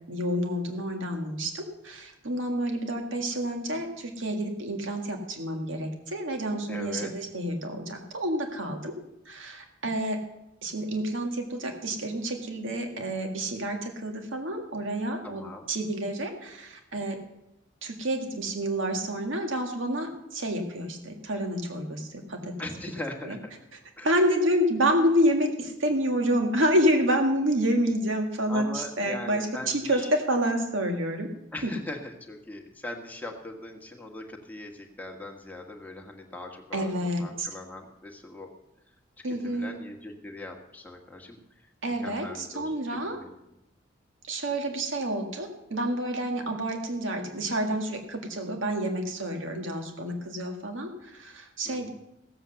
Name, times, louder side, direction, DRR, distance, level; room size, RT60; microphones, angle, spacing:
voice 1, 0.1-8.9 9.3-10.2 10.6-17.2 17.8-22.6 23.2-23.4 24.0-31.3 31.6-31.7 36.7-37.5 39.2-39.8 41.8-43.2 44.2-51.9, equal, 80° right, 4 dB, 1.8 m, -28 dB
voice 2, 6.7-7.1 15.2-15.7 22.6-23.5 24.0-24.1 28.5-30.1 31.5-38.5 39.3-41.7 42.0-43.3 51.6-51.9, left 2 dB, 10° left, 1 dB, 1.5 m, -40 dB
15.5 x 7.8 x 6.8 m, 0.88 s
head